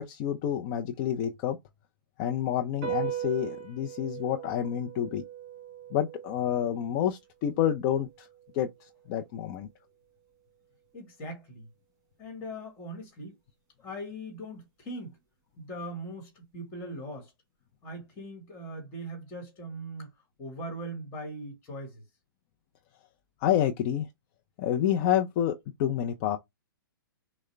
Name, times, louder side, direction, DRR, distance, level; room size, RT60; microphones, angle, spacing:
voice 1, 0.0-1.6 2.2-5.2 5.9-8.3 8.5-8.7 9.1-9.7 23.4-24.1 24.6-26.4, left 10 dB, 35° left, 0.5 m, -28 dB
sound 1, 2.8-9.5, right 10 dB, 25° right, 2.2 m, -40 dB
voice 2, 10.9-11.7 12.2-13.4 13.8-15.2 15.6-17.3 17.8-20.1 20.4-22.0, right 1 dB, 20° left, 1.6 m, -40 dB
6.3 x 2.1 x 3.3 m
hypercardioid pair, 135°, 12 cm